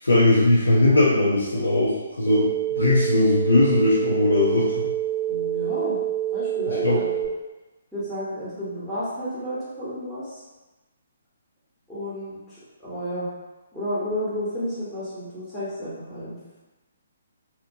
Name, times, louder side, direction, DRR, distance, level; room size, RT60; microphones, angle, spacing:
voice 1, 0.0-4.9 6.7-7.0, left 2 dB, 80° left, -7 dB, 0.5 m, -20 dB
sound 1, 2.3-7.3, right 12 dB, 40° right, 0.7 m, -27 dB
voice 2, 5.3-6.0 6.3-7.3 7.9-10.4 11.9-13.3 13.7-16.4, equal, ahead, -12 dB, 0.9 m, -31 dB
2.8 x 2.1 x 2.6 m, 1.1 s
figure-of-eight pair, 135°, 0 cm